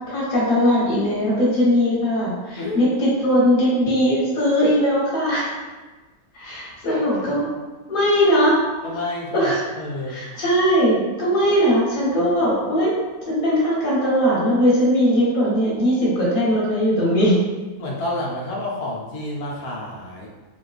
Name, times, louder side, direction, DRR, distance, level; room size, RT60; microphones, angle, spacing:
voice 1, 0.1-5.5 6.3-7.5 7.9-8.6 9.3-9.6 10.1-12.9 13.3-17.4, equal, 40° left, -8 dB, 1.3 m, -19 dB
voice 2, 2.6-2.9 6.8-7.1 8.8-10.2 17.8-20.3, left 1 dB, 85° left, -3 dB, 1.2 m, -29 dB
4.1 x 2.2 x 2.3 m, 1.3 s
omnidirectional pair, 1.6 m